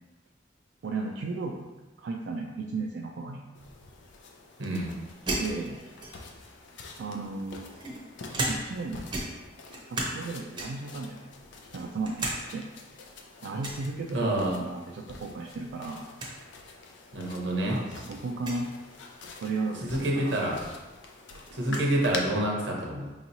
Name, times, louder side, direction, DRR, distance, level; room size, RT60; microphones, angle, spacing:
voice 1, 0.8-1.7 2.0-3.5 5.3-5.8 7.0-7.8 8.4-9.2 9.9-11.3 11.7-12.6 13.4-16.1 17.6-18.7 19.4-20.5 21.7-21.8, right 3 dB, 70° right, -1 dB, 0.3 m, -35 dB
sound 1, 3.6-22.2, left 4 dB, 85° left, 0.5 m, -46 dB
voice 2, 4.6-4.9 14.1-14.6 17.1-17.8 19.8-20.6 21.5-23.1, right 1 dB, 85° right, -1 dB, 0.9 m, -28 dB
sound 2, 5.3-6.4 7.2-8.8 9.1-10.2 10.5-10.9 11.4-12.4 12.7-12.8 13.6-13.9 15.3-15.6 15.9-16.0 16.2-16.4 17.2-17.3 18.3-18.6 20.3-20.4 20.7-21.9, right 2 dB, 25° right, 0.7 m, -35 dB
4.6 x 3.0 x 2.6 m, 1.1 s
head